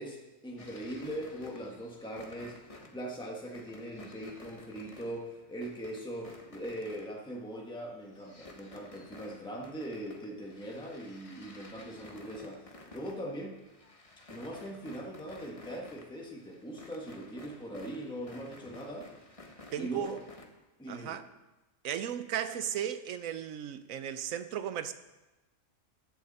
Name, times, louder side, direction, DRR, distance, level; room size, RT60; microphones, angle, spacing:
voice 1, 0.0-13.6 14.3-19.1 19.8-20.2 20.8-21.2, right 1 dB, 5° left, 1.6 m, -41 dB
sound 1, 0.6-7.5 7.9-20.4, left 2 dB, 25° left, 1.3 m, -53 dB
voice 2, 19.7-20.2 20.9-21.3 21.8-24.9, right 9 dB, 80° right, 1.1 m, -35 dB
14.5 x 10.5 x 4.3 m
omnidirectional pair, 1.4 m